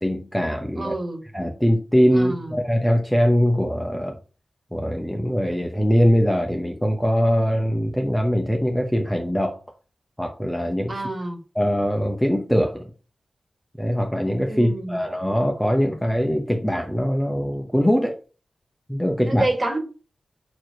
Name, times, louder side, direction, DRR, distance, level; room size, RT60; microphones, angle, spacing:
voice 1, 0.0-0.9 1.3-4.2 4.7-9.6 10.2-10.9 11.6-12.9 13.8-18.2 18.9-19.5, equal, 5° left, 0.8 m, -22 dB
voice 2, 0.8-1.2 2.1-2.6 10.9-11.4 14.5-15.0 19.2-19.8, right 2 dB, 30° right, 1.7 m, -27 dB
6.2 x 4.7 x 4.5 m
wide cardioid pair, 160°, 0 cm